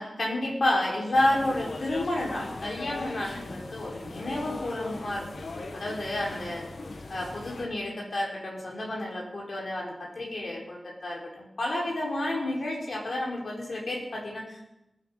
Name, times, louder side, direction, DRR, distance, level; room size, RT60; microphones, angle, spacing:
voice 1, 0.0-5.2 5.7-6.6 7.1-14.6, left 1 dB, 65° left, -3 dB, 4.5 m, -30 dB
sound 1, 1.1-7.7, left 3 dB, 90° left, 1.6 m, -39 dB
19.5 x 9.0 x 5.7 m, 0.87 s
wide cardioid pair, 85°, 0 cm